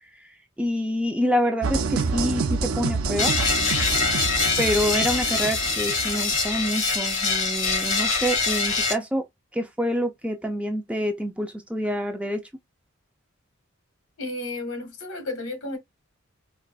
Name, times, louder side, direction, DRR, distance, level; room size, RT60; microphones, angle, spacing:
voice 1, 0.0-3.4 4.6-9.2 9.5-12.5, equal, 5° right, 0.5 m, -27 dB
sound 1, 1.6-6.5, right 4 dB, 70° right, 0.6 m, -28 dB
sound 2, 3.2-8.9, left 4 dB, 70° left, 2.9 m, -24 dB
voice 2, 14.2-15.8, left 2 dB, 90° left, 1.5 m, -32 dB
4.6 x 2.5 x 2.3 m
head